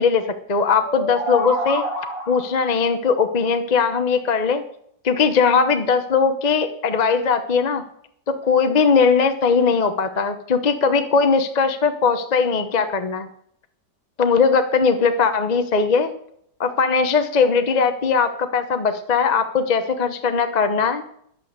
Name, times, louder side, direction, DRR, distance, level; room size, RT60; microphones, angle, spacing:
voice 1, 0.0-1.8 2.3-4.6 5.0-7.8 8.3-13.3 14.2-16.1 16.6-21.0, left 5 dB, 40° left, 8 dB, 0.6 m, -19 dB
sound 1, 0.8-2.6, left 1 dB, 35° right, 6.1 m, -27 dB
11.0 x 8.5 x 6.6 m, 0.68 s
omnidirectional pair, 1.9 m